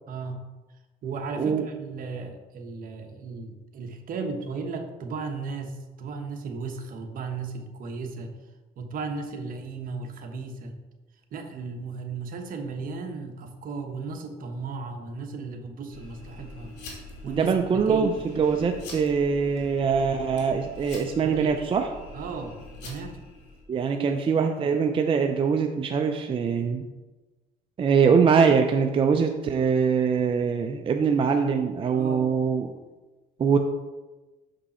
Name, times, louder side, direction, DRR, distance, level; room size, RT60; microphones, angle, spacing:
voice 1, 0.1-0.4 1.0-8.3 8.8-10.8 11.3-16.7 17.2-18.1 21.2-21.6 22.1-23.2 23.9-24.1 31.9-32.3, right 4 dB, 55° right, 4 dB, 1.0 m, -35 dB
sound 1, 15.9-23.6, left 2 dB, 90° left, 2.0 m, -44 dB
voice 2, 17.3-21.9 23.7-26.9 27.8-32.7 33.4-33.6, right 6 dB, 30° right, 5 dB, 0.5 m, -23 dB
6.6 x 5.2 x 4.2 m, 1.2 s
cardioid pair, 110°, 17 cm